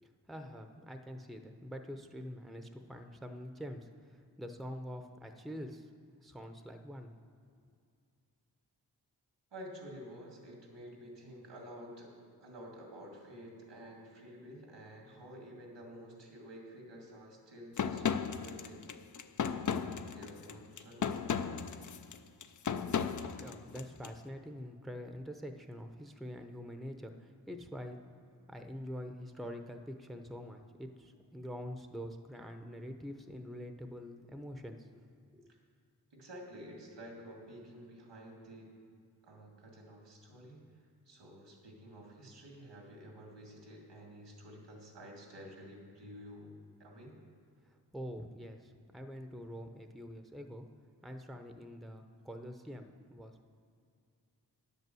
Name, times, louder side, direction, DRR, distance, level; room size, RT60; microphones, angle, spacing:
voice 1, 0.0-5.9 6.2-7.1 23.3-28.0 28.5-35.5 47.6-50.7 51.0-53.3, equal, ahead, 6 dB, 0.7 m, -45 dB
voice 2, 9.5-12.1 12.4-18.9 19.7-21.2 36.1-38.7 39.2-40.6 41.1-46.5 46.8-47.2, equal, 85° right, 0 dB, 2.2 m, -50 dB
sound 1, 17.8-24.1, left 7 dB, 45° left, 0.5 m, -35 dB
10.0 x 5.6 x 7.7 m, 2.4 s
cardioid pair, 60°, 42 cm